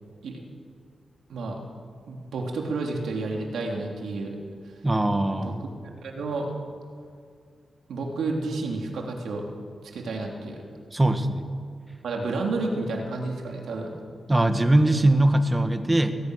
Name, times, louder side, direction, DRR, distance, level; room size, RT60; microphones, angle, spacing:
voice 1, 2.1-4.4 5.2-5.5 6.0-6.5 7.9-9.5 9.9-10.6 12.0-13.9, right 3 dB, 90° right, 1 dB, 3.2 m, -30 dB
voice 2, 4.8-5.6 10.9-11.5 14.3-16.2, right 1 dB, 20° right, 8 dB, 1.7 m, -21 dB
21.5 x 19.0 x 6.5 m, 2.2 s
cardioid pair, 90°, 0 cm